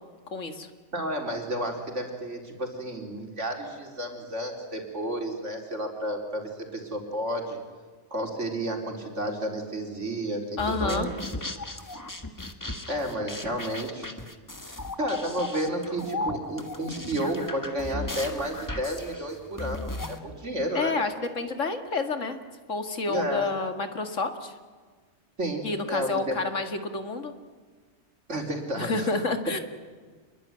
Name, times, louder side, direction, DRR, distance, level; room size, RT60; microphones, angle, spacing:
voice 1, 0.3-0.7 10.6-11.1 20.7-22.4 22.7-24.5 25.6-27.3 28.8-29.6, left 3 dB, 85° left, 7 dB, 2.3 m, -29 dB
voice 2, 0.9-7.6 8.1-11.1 12.9-14.1 14.6-20.9 23.1-23.5 25.4-26.4 28.3-29.1, right 1 dB, 75° right, 2 dB, 4.4 m, -31 dB
sound 1, 10.6-20.2, left 2 dB, 15° left, 1.6 m, -36 dB
27.0 x 22.0 x 9.6 m, 1.5 s
omnidirectional pair, 1.3 m